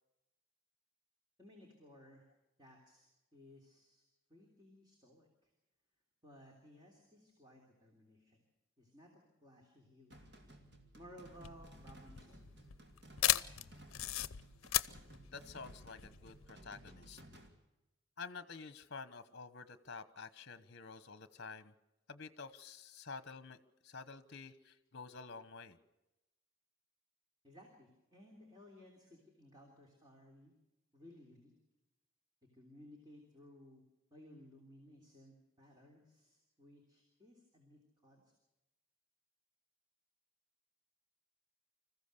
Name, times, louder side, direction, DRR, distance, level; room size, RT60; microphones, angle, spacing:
voice 1, 1.4-2.3 2.6-4.0 4.3-5.5 6.2-8.4 8.8-10.3 10.9-12.6 13.2-13.6 27.4-30.5 30.9-31.5 32.4-33.8 34.1-38.3, equal, 20° right, 0 dB, 3.2 m, -59 dB
sound 1, 10.1-17.5, right 1 dB, 50° right, 2.8 m, -57 dB
sound 2, 11.3-16.5, left 14 dB, 75° left, 0.6 m, -36 dB
voice 2, 15.3-17.2 18.2-21.7 22.1-25.8, left 4 dB, 50° left, 13 dB, 1.0 m, -50 dB
26.0 x 15.0 x 6.8 m, 0.99 s
head